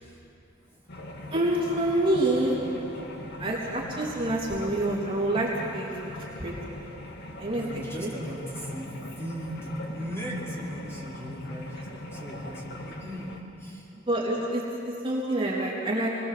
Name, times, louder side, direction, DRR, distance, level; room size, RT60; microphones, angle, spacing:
sound 1, 0.9-13.4, left 1 dB, 55° left, 2.5 m, -40 dB
voice 1, 1.3-2.6 3.4-6.1 6.4-6.7 7.4-8.1 14.1-16.1, right 1 dB, 25° right, -4 dB, 3.2 m, -27 dB
voice 2, 7.6-13.3 13.6-13.9, equal, 15° left, -5 dB, 5.4 m, -38 dB
27.5 x 21.5 x 7.7 m, 2.9 s
head